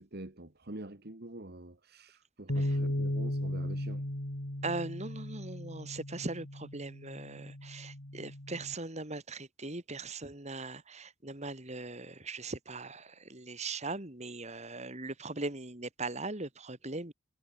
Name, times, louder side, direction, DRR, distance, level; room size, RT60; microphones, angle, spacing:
voice 1, 0.0-4.1, right 1 dB, 55° right, 1.9 m, -46 dB
sound 1, 2.5-8.7, left 1 dB, 70° left, 3.0 m, -36 dB
voice 2, 4.6-17.1, right 3 dB, 35° right, 3.0 m, -40 dB
head